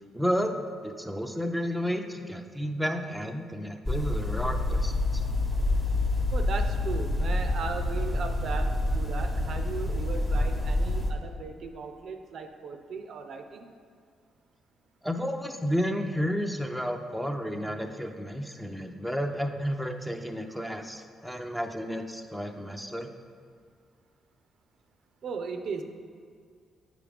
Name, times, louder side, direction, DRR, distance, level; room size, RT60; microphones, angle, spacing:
voice 1, 0.1-0.6 0.8-5.2 15.0-23.1, equal, ahead, 4 dB, 0.5 m, -31 dB
sound 1, 3.9-11.1, left 2 dB, 20° left, 0.9 m, -27 dB
voice 2, 6.3-13.7 25.2-25.8, right 5 dB, 65° right, 6 dB, 0.5 m, -37 dB
8.3 x 4.9 x 3.4 m, 2.1 s
cardioid pair, 90°, 0 cm